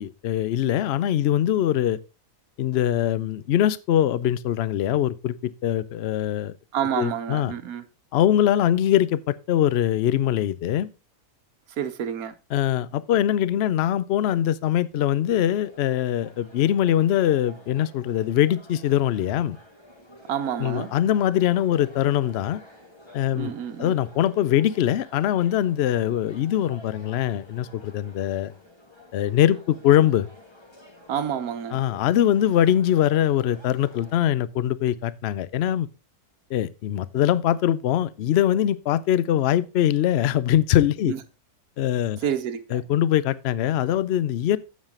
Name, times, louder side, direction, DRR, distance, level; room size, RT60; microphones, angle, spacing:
voice 1, 0.0-2.0 2.6-6.5 7.0-7.5 8.1-10.9 12.5-19.6 20.6-22.6 23.1-23.5 23.8-28.5 29.1-30.3 31.7-35.9 36.5-41.1 41.8-42.2 42.7-44.6, left 11 dB, 60° left, 0.6 m, -22 dB
voice 2, 6.7-7.8 11.8-12.3 20.3-20.9 23.3-23.9 31.1-31.8 41.1-41.2 42.2-42.6, right 9 dB, 70° right, 1.4 m, -28 dB
sound 1, 15.4-34.3, left 1 dB, 15° left, 1.9 m, -50 dB
8.9 x 7.4 x 3.7 m
omnidirectional pair, 1.6 m